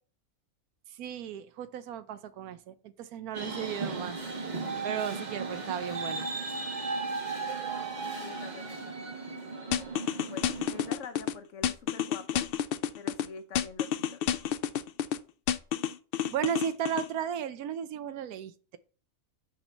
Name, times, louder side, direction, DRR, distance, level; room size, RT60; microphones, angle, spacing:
voice 1, 1.0-4.2 4.8-6.3 16.3-18.8, right 9 dB, 90° right, 1.2 m, -35 dB
sound 1, 3.3-10.9, right 3 dB, 35° right, 1.1 m, -36 dB
voice 2, 7.9-9.1 10.1-12.5 12.9-14.2, left 6 dB, 60° left, 1.1 m, -46 dB
sound 2, 9.7-11.3 11.6-13.3 13.6-15.2 15.5-17.1, left 9 dB, 85° left, 0.5 m, -29 dB
5.3 x 5.0 x 6.4 m
omnidirectional pair, 1.5 m